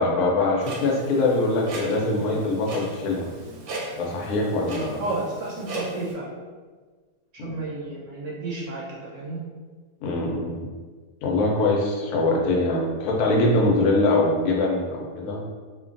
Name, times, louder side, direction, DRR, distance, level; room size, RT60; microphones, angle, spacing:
voice 1, 0.0-3.3 4.0-5.0 7.4-7.6 10.0-10.6 11.2-15.4, left 2 dB, 85° left, -2 dB, 1.1 m, -23 dB
Clock, 0.6-6.1, right 1 dB, 85° right, 1.1 m, -37 dB
voice 2, 5.0-6.3 7.3-8.8 9.1-9.4, right 2 dB, 65° right, -4 dB, 0.8 m, -31 dB
3.1 x 2.2 x 2.5 m, 1.5 s
omnidirectional pair, 1.6 m